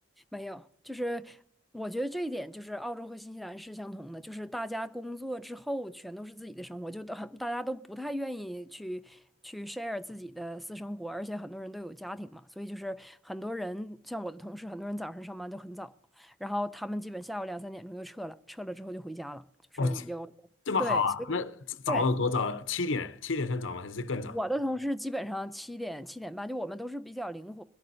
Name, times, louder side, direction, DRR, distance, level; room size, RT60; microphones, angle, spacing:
voice 1, 0.3-1.4 1.7-19.4 19.8-20.3 20.8-21.4 21.9-22.1 24.3-27.6, equal, ahead, 0.5 m, -37 dB
voice 2, 20.7-24.4, left 4 dB, 70° left, 0.8 m, -29 dB
22.5 x 12.0 x 2.7 m
head